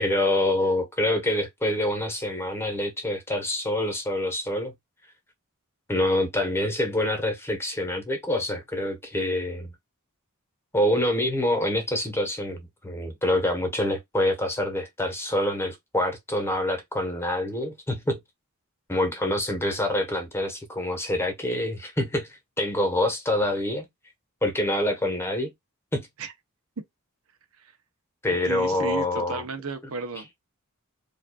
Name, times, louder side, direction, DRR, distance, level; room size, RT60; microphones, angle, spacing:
voice 1, 0.0-4.7 5.9-9.7 10.7-18.2 18.9-22.3 22.6-23.9 24.4-25.5 25.9-26.1 28.2-29.4, left 1 dB, 10° left, 1.1 m, -26 dB
voice 2, 28.4-30.4, right 4 dB, 65° right, 0.8 m, -34 dB
4.9 x 2.6 x 2.2 m
head